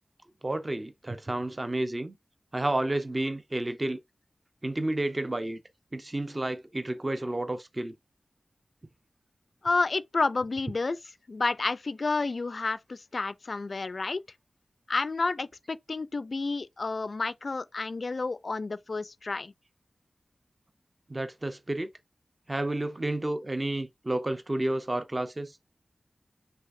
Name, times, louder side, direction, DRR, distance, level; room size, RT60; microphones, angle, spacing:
voice 1, 0.4-2.2 2.5-4.0 4.6-5.6 5.9-7.9 21.1-21.9 22.5-25.6, right 1 dB, 30° right, 0.5 m, -31 dB
voice 2, 9.6-11.0 11.3-14.2 14.9-19.5, left 3 dB, 60° left, 0.3 m, -30 dB
5.6 x 3.4 x 2.5 m
wide cardioid pair, 70°, 0 cm